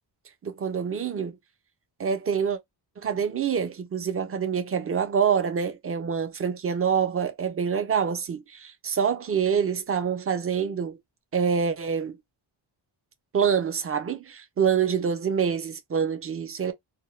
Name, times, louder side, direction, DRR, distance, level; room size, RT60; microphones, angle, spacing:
voice 1, 0.4-1.4 2.0-2.6 3.0-11.0 11.3-12.2 13.3-16.7, right 7 dB, 30° right, 0.4 m, -26 dB
2.3 x 2.0 x 2.9 m
wide cardioid pair, 140°, 46 cm